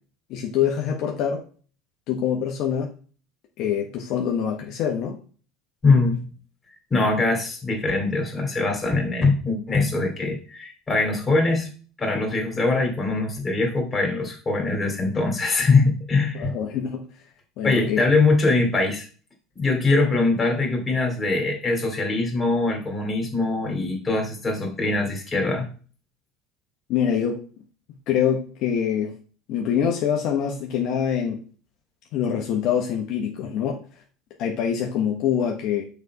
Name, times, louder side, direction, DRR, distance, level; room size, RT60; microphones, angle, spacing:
voice 1, 0.3-1.4 2.1-2.9 3.6-5.2 16.3-17.0 17.6-18.0 26.9-27.4 28.1-29.2 29.5-31.4 32.1-33.8 34.4-35.8, left 8 dB, 60° left, 1 dB, 1.1 m, -25 dB
voice 2, 5.8-6.3 6.9-11.7 12.0-16.5 17.6-19.1 19.6-25.7, left 3 dB, 20° left, 2 dB, 2.7 m, -22 dB
6.4 x 4.1 x 4.8 m, 0.39 s
supercardioid pair, 115°, 0 cm